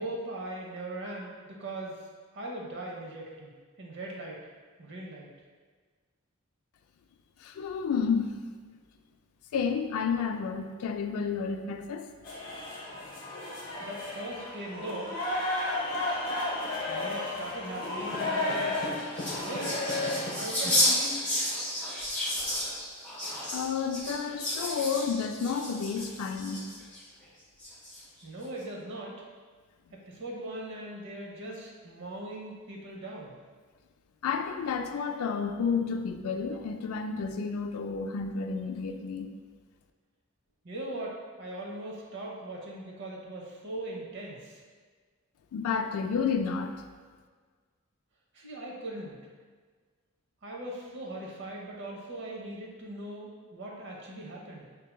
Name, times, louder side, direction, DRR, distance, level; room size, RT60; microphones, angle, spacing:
voice 1, 0.0-2.0 2.3-4.4 4.8-5.3 13.8-15.1 16.9-18.8 19.4-20.0 20.3-21.2 28.2-29.2 29.9-33.3 40.6-44.6 48.3-49.2 50.4-54.7, right 1 dB, 55° right, -2 dB, 0.7 m, -40 dB
voice 2, 7.4-8.4 9.5-12.1 23.5-26.6 34.2-39.3 45.5-46.7, left 5 dB, 80° left, 6 dB, 0.3 m, -31 dB
sound 1, 12.2-20.6, left 2 dB, 40° left, 0.8 m, -33 dB
sound 2, 18.6-27.0 27.6-28.2, left 1 dB, 10° left, 1.3 m, -32 dB
5.5 x 2.7 x 2.2 m, 1.5 s
head